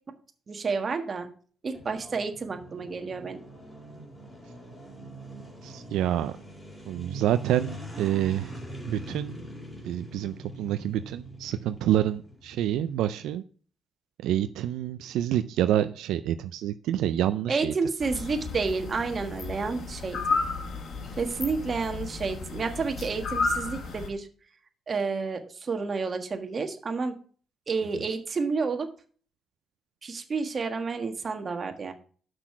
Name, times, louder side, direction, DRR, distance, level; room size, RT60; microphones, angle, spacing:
voice 1, 0.5-1.3 1.6-3.4 17.5-20.4 21.2-24.3 24.9-27.2 27.7-28.9 30.0-31.9, right 4 dB, 40° right, 6 dB, 1.4 m, -30 dB
sound 1, 1.7-13.1, right 1 dB, 20° left, 3.7 m, -43 dB
voice 2, 5.6-6.3 6.9-8.5 8.9-9.4 9.8-13.4 14.2-17.7, right 12 dB, 90° right, 10 dB, 0.4 m, -27 dB
sound 2, 18.0-24.1, left 3 dB, 60° left, 1.6 m, -33 dB
6.4 x 6.0 x 5.9 m, 0.43 s
cardioid pair, 90°, 0 cm